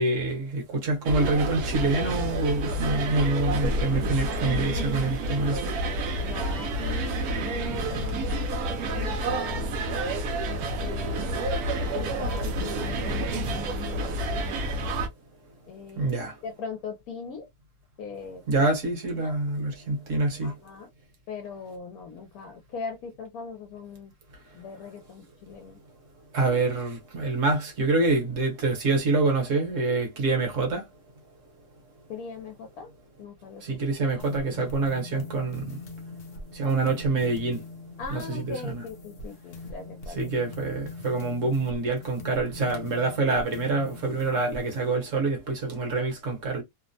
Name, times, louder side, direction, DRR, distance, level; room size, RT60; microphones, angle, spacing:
voice 1, 0.0-5.7 16.0-16.3 18.5-20.5 26.3-30.8 33.6-35.8 36.5-37.6 38.1-38.8 40.2-46.6, right 3 dB, 60° right, 1.2 m, -26 dB
sound 1, 1.0-15.1, right 1 dB, 75° right, 1.1 m, -29 dB
voice 2, 6.2-9.8 10.7-11.4 11.8-14.9 15.7-16.1 16.4-17.5 18.0-18.4 19.1-19.3 20.4-20.9 21.3-24.1 24.5-25.8 32.1-32.9 33.2-33.7 38.0-40.3, left 5 dB, 75° left, 1.1 m, -40 dB
sound 2, 34.2-44.9, left 2 dB, 55° left, 0.7 m, -42 dB
2.9 x 2.0 x 2.6 m
omnidirectional pair, 1.6 m